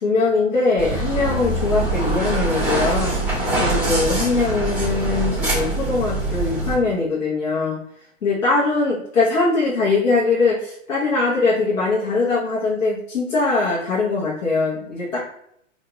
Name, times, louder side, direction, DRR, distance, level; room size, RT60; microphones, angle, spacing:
voice 1, 0.0-3.2 3.6-7.8 8.2-15.2, left 3 dB, 75° left, -6 dB, 1.2 m, -21 dB
sound 1, 0.8-6.8, right 2 dB, 5° right, 1.5 m, -23 dB
3.5 x 2.8 x 3.1 m, 0.72 s
hypercardioid pair, 130°, 39 cm